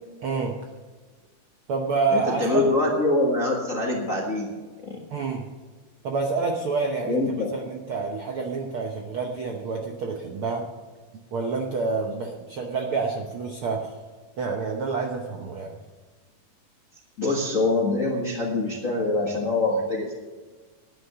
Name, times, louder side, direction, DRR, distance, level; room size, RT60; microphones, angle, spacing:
voice 1, 0.2-0.6 1.7-2.6 5.1-5.4 6.0-10.6 11.3-14.0 14.4-15.7, right 4 dB, 65° right, 1 dB, 1.3 m, -28 dB
voice 2, 2.1-4.5 4.8-5.0 7.1-7.5 17.2-20.1, left 2 dB, 40° left, -1 dB, 1.1 m, -24 dB
11.5 x 9.7 x 6.8 m, 1.4 s
omnidirectional pair, 3.7 m